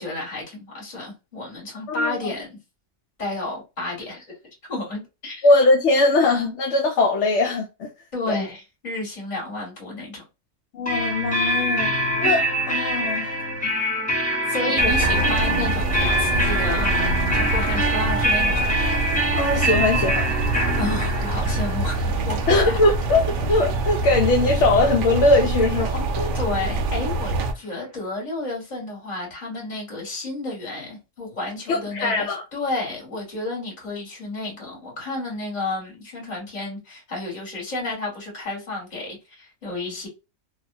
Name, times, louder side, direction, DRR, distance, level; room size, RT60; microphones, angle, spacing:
voice 1, 0.0-2.6 3.2-4.3 4.7-5.5 8.1-10.2 14.5-18.7 20.8-22.8 26.3-40.1, left 2 dB, 35° left, 1.6 m, -31 dB
voice 2, 1.9-2.3 5.4-7.9 8.3-8.4 10.7-11.9 12.2-13.3 14.8-14.9 19.3-20.4 22.5-26.3 31.7-32.4, left 2 dB, 65° left, 0.9 m, -21 dB
sound 1, 10.9-24.4, equal, 5° left, 0.8 m, -24 dB
sound 2, 14.8-27.5, right 2 dB, 70° right, 0.5 m, -25 dB
2.9 x 2.2 x 2.5 m
omnidirectional pair, 1.4 m